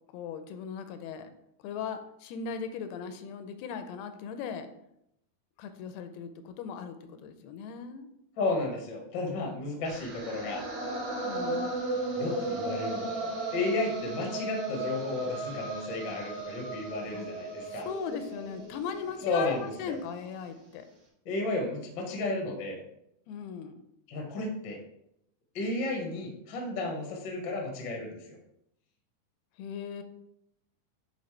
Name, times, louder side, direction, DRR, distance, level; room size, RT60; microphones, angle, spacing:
voice 1, 0.1-1.3 1.6-4.7 5.6-8.1 11.2-11.9 17.1-17.3 17.7-20.9 23.3-23.7 29.6-30.0, left 6 dB, 85° left, 9 dB, 2.6 m, -38 dB
voice 2, 8.4-10.6 12.1-17.9 19.2-20.0 21.2-22.8 24.1-24.8 25.5-28.4, left 2 dB, 70° left, 1 dB, 1.1 m, -33 dB
sound 1, 9.9-19.9, right 2 dB, 65° right, 3.7 m, -36 dB
9.5 x 4.3 x 3.3 m, 0.78 s
omnidirectional pair, 4.5 m